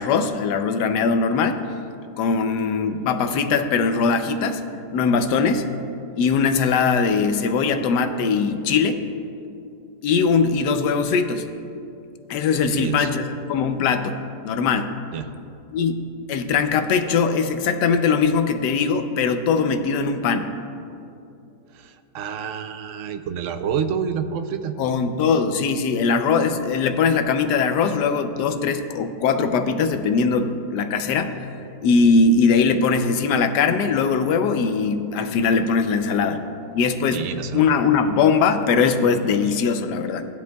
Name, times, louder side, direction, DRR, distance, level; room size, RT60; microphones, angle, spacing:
voice 1, 0.0-1.6 2.2-4.6 4.9-5.6 6.2-9.0 10.0-11.4 12.3-14.2 14.4-14.9 15.7-20.5 24.8-31.4 31.8-36.4 36.7-37.3 37.5-40.2, left 5 dB, 85° left, 8 dB, 1.3 m, -21 dB
voice 2, 12.6-13.1 15.1-15.3 21.7-24.7 37.1-37.8, right 7 dB, 65° right, 9 dB, 0.8 m, -28 dB
16.0 x 10.5 x 2.3 m, 2.6 s
omnidirectional pair, 1.7 m